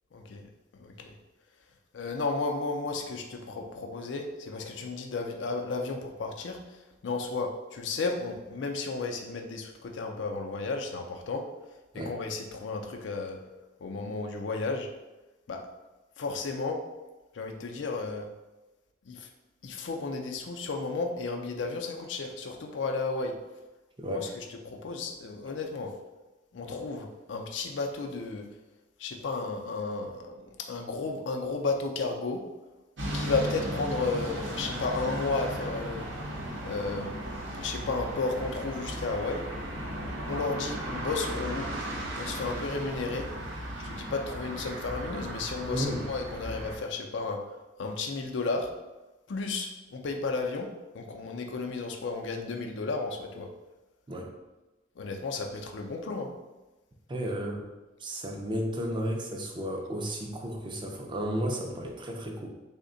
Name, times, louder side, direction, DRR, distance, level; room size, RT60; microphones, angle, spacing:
voice 1, 0.1-1.2 1.9-11.4 11.9-13.4 13.8-14.9 15.5-15.6 16.2-16.8 17.3-18.3 19.0-19.3 19.6-23.4 24.1-25.9 26.5-28.5 29.0-32.4 33.1-36.1 36.6-39.4 40.2-41.7 42.2-43.3 43.8-47.4 47.8-48.7 49.3-50.7 50.9-53.5 55.0-56.3, left 3 dB, 75° left, 2 dB, 0.4 m, -33 dB
voice 2, 24.0-24.3 45.7-46.1 54.1-54.3 57.1-57.7 58.0-62.5, equal, 25° right, 1 dB, 0.5 m, -33 dB
sound 1, 33.0-46.8, right 1 dB, 85° right, 0.7 m, -36 dB
3.5 x 2.1 x 3.8 m, 1.1 s
head